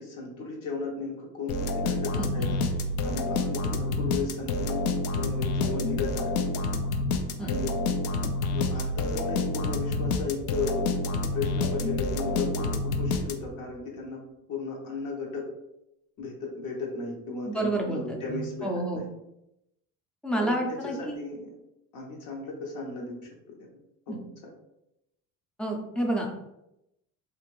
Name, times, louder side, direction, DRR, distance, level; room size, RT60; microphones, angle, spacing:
voice 1, 0.0-4.8 5.1-6.5 7.4-7.8 8.5-10.8 11.3-14.2 14.5-15.4 16.2-19.1 20.3-21.5 21.9-23.2 24.1-24.2, left 4 dB, 60° left, -2 dB, 0.9 m, -35 dB
sound 1, 1.5-13.7, left 2 dB, 80° left, 0.5 m, -28 dB
voice 2, 2.2-2.5 7.4-7.5 17.5-18.0 18.3-19.0 20.2-21.2 24.1-24.2 25.6-26.4, right 1 dB, 5° left, 0 dB, 0.4 m, -29 dB
2.5 x 2.5 x 3.0 m, 0.85 s
cardioid pair, 135°, 35 cm